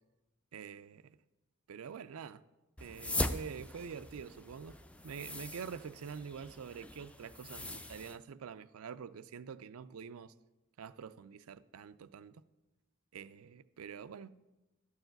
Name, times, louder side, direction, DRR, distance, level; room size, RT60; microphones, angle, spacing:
voice 1, 0.5-1.2 1.7-2.4 2.8-4.8 5.0-10.3 10.8-12.4 13.1-14.3, right 6 dB, 90° right, 0.4 m, -46 dB
sound 1, 2.8-8.2, left 1 dB, 5° left, 0.3 m, -41 dB
12.0 x 4.8 x 7.7 m
head